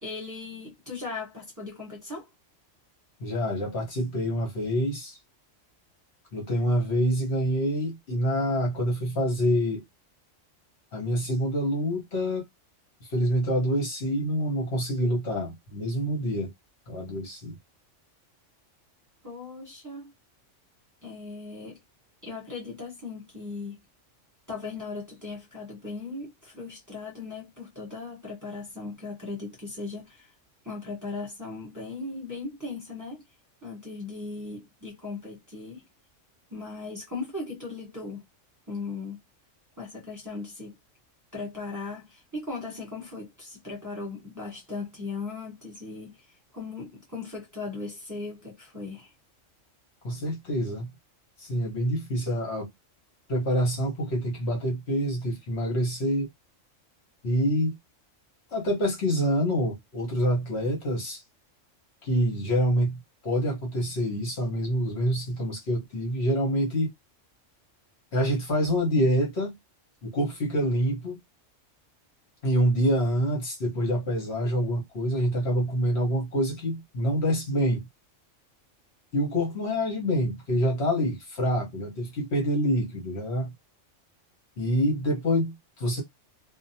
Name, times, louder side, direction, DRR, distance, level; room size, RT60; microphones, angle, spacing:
voice 1, 0.0-2.3 19.2-20.1 21.0-21.8 22.2-23.8 24.5-30.3 30.6-33.2 33.6-35.8 36.5-38.3 38.7-39.2 39.8-40.8 41.3-46.2 46.5-49.1, left 3 dB, 15° right, 1.0 m, -38 dB
voice 2, 3.2-5.2 6.3-9.8 10.9-12.4 13.1-16.5 16.9-17.5 50.0-50.9 51.4-52.7 53.3-56.3 57.2-57.7 58.5-61.2 62.0-66.9 68.1-69.5 70.0-71.2 72.4-77.8 79.1-83.5 84.6-86.0, equal, 60° left, 1.3 m, -26 dB
2.8 x 2.2 x 2.7 m
omnidirectional pair, 1.3 m